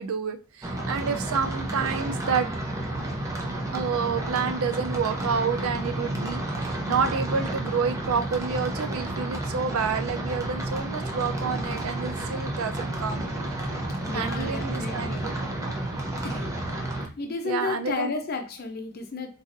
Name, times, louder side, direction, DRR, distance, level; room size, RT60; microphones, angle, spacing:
voice 1, 0.0-2.5 3.7-13.2 14.1-15.3 17.4-18.1, right 5 dB, 65° right, 0.4 m, -29 dB
sound 1, 0.6-17.1, right 1 dB, 15° right, 0.7 m, -31 dB
voice 2, 14.1-15.3 16.2-16.5 17.2-19.4, left 3 dB, 45° left, 0.7 m, -32 dB
4.0 x 2.4 x 2.5 m
head